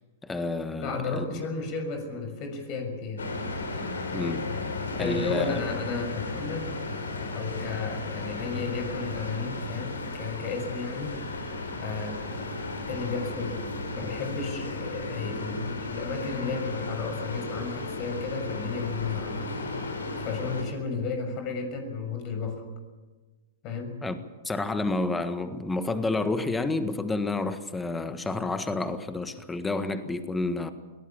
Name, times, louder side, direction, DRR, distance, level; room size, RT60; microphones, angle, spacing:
voice 1, 0.2-1.4 4.1-4.5 5.0-5.6 24.0-24.2 24.4-30.7, left 2 dB, 10° left, 10 dB, 1.6 m, -29 dB
voice 2, 0.8-3.3 5.0-6.7 7.3-11.2 11.8-12.2 12.8-13.6 13.9-19.4 20.2-22.6 23.6-24.0, left 4 dB, 40° left, 6 dB, 6.3 m, -33 dB
sound 1, 3.2-20.6, left 3 dB, 85° left, 4.6 m, -34 dB
22.5 x 17.5 x 8.7 m, 1.3 s
hypercardioid pair, 115°, 0 cm